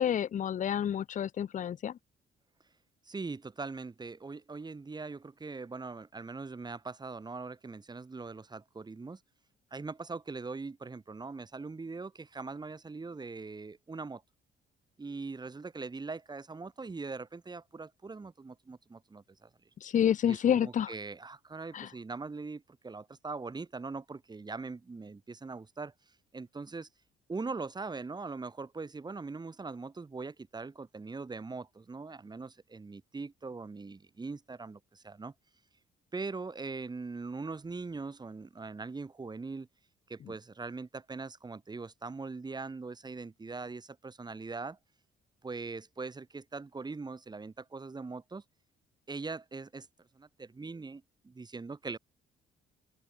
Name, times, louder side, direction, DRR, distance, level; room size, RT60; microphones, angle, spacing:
voice 1, 0.0-2.0 19.8-20.9 21.7-21.9, left 9 dB, 40° left, 0.5 m, -29 dB
voice 2, 3.1-9.2 9.7-14.2 15.0-19.5 20.3-25.9 26.3-26.9 27.3-35.3 36.1-39.7 40.1-44.8 45.4-48.4 49.1-49.9 50.1-52.0, right 4 dB, 20° right, 1.1 m, -41 dB
open air
cardioid pair, 90°, 20 cm